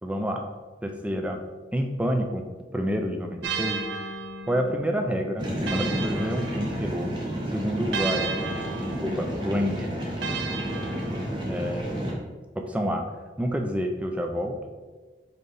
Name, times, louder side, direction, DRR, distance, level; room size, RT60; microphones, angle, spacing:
voice 1, 0.0-0.4 0.8-1.4 1.7-2.4 2.7-3.8 4.5-7.1 7.5-8.4 9.0-9.9 11.5-12.3 12.6-13.0 13.4-14.6, equal, 5° right, 3 dB, 0.3 m, -28 dB
sound 1, 3.4-7.2 7.9-11.6, right 4 dB, 85° right, 0.5 m, -35 dB
sound 2, 5.4-12.1, equal, 25° right, 0.7 m, -31 dB
4.1 x 3.8 x 3.4 m, 1.3 s
head